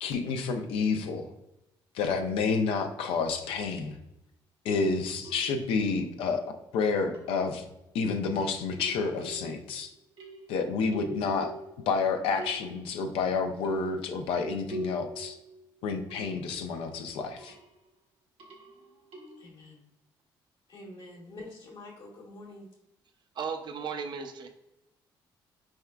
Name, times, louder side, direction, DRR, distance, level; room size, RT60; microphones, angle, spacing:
voice 1, 0.0-1.3 1.9-4.0 4.6-6.4 6.7-7.6 7.9-9.9 10.5-11.5 11.9-15.4 15.8-17.5, left 4 dB, 85° left, 5 dB, 0.5 m, -29 dB
sound 1, 3.4-3.5 5.2-5.9 7.1-7.7 8.3-9.8 10.2-12.1 12.4-13.0 13.6-16.6 17.1-17.7 18.4-19.5, right 1 dB, 70° right, 0.9 m, -44 dB
voice 2, 19.4-19.8 20.7-22.7, left 2 dB, 60° left, -5 dB, 1.2 m, -46 dB
voice 3, 23.4-24.5, right 6 dB, 50° right, 6 dB, 0.5 m, -35 dB
4.5 x 3.6 x 2.3 m, 0.90 s
cardioid pair, 85°, 9 cm